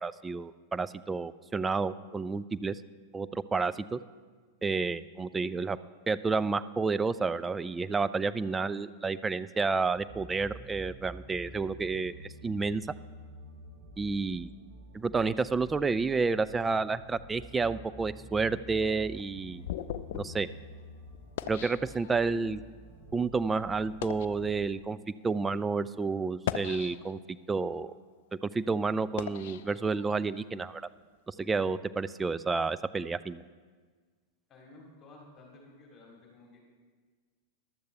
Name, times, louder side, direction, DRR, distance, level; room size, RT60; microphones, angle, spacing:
voice 1, 0.0-2.8 3.1-4.0 4.6-5.8 6.1-12.9 14.0-14.5 14.9-19.6 20.1-20.5 21.5-22.6 23.1-25.0 25.2-27.9 28.4-30.9 31.3-33.5, right 4 dB, 15° right, 14 dB, 0.3 m, -30 dB
sound 1, 9.9-24.7, equal, 45° right, 2.6 m, -49 dB
sound 2, 18.8-22.5 23.2-23.3 23.8-24.4 25.2-25.3 26.3-27.4 27.9-30.4, left 10 dB, 55° left, 0.4 m, -40 dB
voice 2, 34.5-36.6, left 2 dB, 25° left, -2 dB, 3.0 m, -54 dB
14.5 x 12.0 x 3.4 m, 1.5 s
figure-of-eight pair, 90°, 0 cm